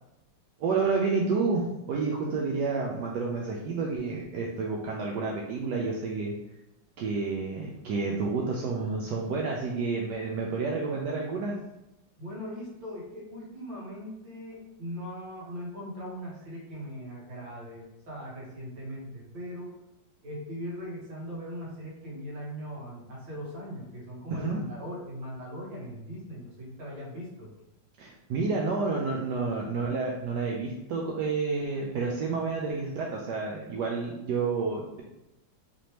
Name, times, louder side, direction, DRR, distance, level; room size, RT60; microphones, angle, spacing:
voice 1, 0.6-6.3 7.0-11.5 24.3-24.6 28.0-35.0, right 4 dB, 75° right, -1 dB, 1.1 m, -30 dB
voice 2, 12.2-19.7 20.2-27.5, equal, 90° right, -5 dB, 2.1 m, -40 dB
4.2 x 3.2 x 2.9 m, 0.92 s
omnidirectional pair, 2.0 m